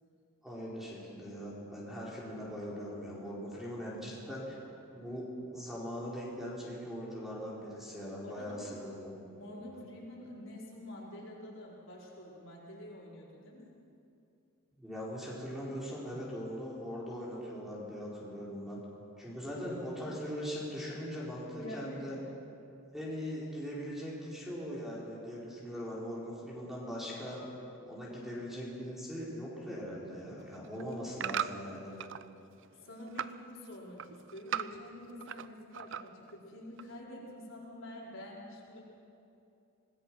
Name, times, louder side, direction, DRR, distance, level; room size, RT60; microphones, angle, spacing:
voice 1, 0.4-4.6 4.9-5.3 5.5-9.1 9.7-9.8 14.7-18.8 19.2-22.2 22.9-27.4 27.9-32.0, equal, ahead, -6 dB, 4.4 m, -40 dB
voice 2, 8.2-8.7 9.4-13.7 21.5-22.1 30.8-30.9 32.8-38.8, left 1 dB, 60° left, -4 dB, 5.0 m, -47 dB
sound 1, 30.4-32.3 32.6-33.4 33.7-35.5 35.7-36.3 36.8-36.9, right 9 dB, 55° right, 0.5 m, -38 dB
25.5 x 19.5 x 6.2 m, 2.7 s
head